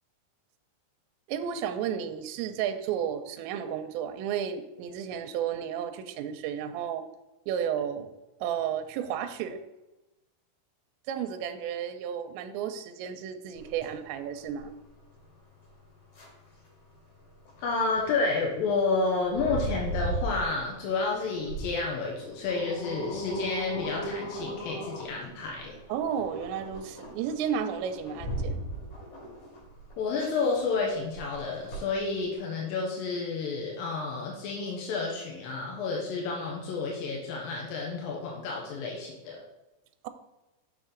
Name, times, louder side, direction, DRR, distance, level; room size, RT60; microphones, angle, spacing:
voice 1, 1.3-7.1 7.5-8.1 8.4-9.6 11.1-14.7 25.9-28.6, right 8 dB, 85° right, 7 dB, 2.8 m, -32 dB
sound 1, 13.6-32.4, right 1 dB, 55° left, 4.5 m, -38 dB
voice 2, 17.6-25.8 30.0-39.4, left 4 dB, 75° left, -2 dB, 2.3 m, -30 dB
7.1 x 6.2 x 3.8 m, 1.0 s
omnidirectional pair, 5.2 m